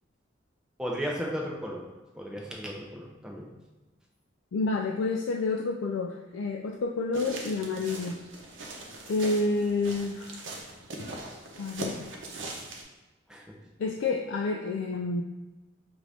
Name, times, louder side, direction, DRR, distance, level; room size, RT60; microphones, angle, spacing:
voice 1, 0.8-1.9 2.1-3.5 13.3-13.5, equal, 5° right, -2 dB, 0.5 m, -35 dB
voice 2, 4.5-8.2 9.1-10.4 11.6-12.1 13.8-15.2, left 3 dB, 85° left, 1 dB, 0.3 m, -29 dB
sound 1, 7.1-12.8, right 2 dB, 85° right, 0.7 m, -40 dB
5.0 x 2.5 x 3.3 m, 1.1 s
head